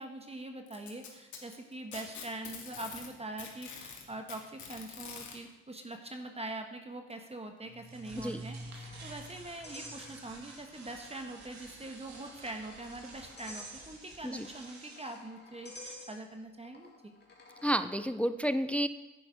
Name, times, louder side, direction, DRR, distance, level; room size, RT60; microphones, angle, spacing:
voice 1, 0.0-17.1, right 2 dB, 20° right, 5 dB, 1.2 m, -43 dB
Packing tape duct tape, 0.7-3.1 3.4-5.3 6.5-6.6 7.1-7.2 8.0-8.1, left 6 dB, 70° left, 2.5 m, -45 dB
sound 1, 7.6-15.2, right 2 dB, 65° right, 2.7 m, -49 dB
sound 2, 8.0-10.6 10.9-11.0 11.9-17.8, left 1 dB, 35° left, 2.4 m, -52 dB
voice 2, 17.6-18.9, equal, 5° left, 12 dB, 0.5 m, -30 dB
10.5 x 9.9 x 5.1 m, 1.1 s
cardioid pair, 90°, 30 cm